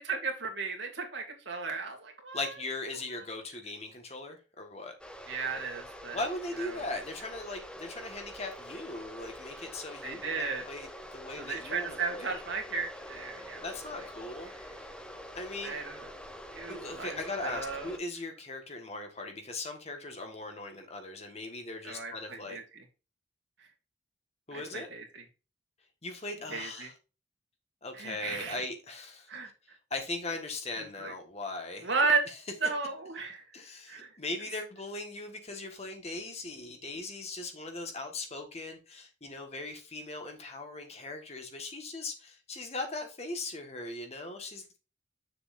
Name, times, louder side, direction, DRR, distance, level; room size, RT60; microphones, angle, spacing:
voice 1, 0.0-2.5 3.2-3.3 5.3-6.2 6.6-6.8 10.0-10.6 11.4-13.6 15.6-16.0 16.5-17.2 17.4-17.9 21.8-22.6 24.5-25.0 26.5-26.9 27.9-28.7 29.3-29.5 30.8-31.1 31.8-32.2 32.6-33.5 33.9-34.1, right 4 dB, 65° right, 3 dB, 2.3 m, -34 dB
voice 2, 2.3-5.0 6.1-12.3 13.6-14.5 15.3-15.8 16.7-22.6 24.5-24.9 26.0-26.9 27.8-29.3 29.9-31.9 33.5-44.8, left 2 dB, 30° left, 4 dB, 1.5 m, -39 dB
sound 1, 5.0-18.0, equal, 5° left, 0.7 m, -46 dB
8.0 x 6.8 x 2.6 m, 0.31 s
head